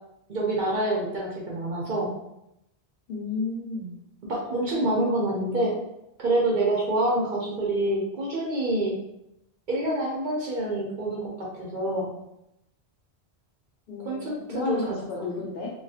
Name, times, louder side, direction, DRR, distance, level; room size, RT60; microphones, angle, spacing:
voice 1, 0.3-2.1 4.3-5.7 6.2-8.9 9.7-12.1 14.0-14.4 14.7-15.0, right 1 dB, 55° right, -3 dB, 0.6 m, -26 dB
voice 2, 3.1-3.9 13.9-15.7, left 3 dB, 60° left, -2 dB, 0.7 m, -32 dB
2.5 x 2.3 x 2.4 m, 0.84 s
omnidirectional pair, 1.1 m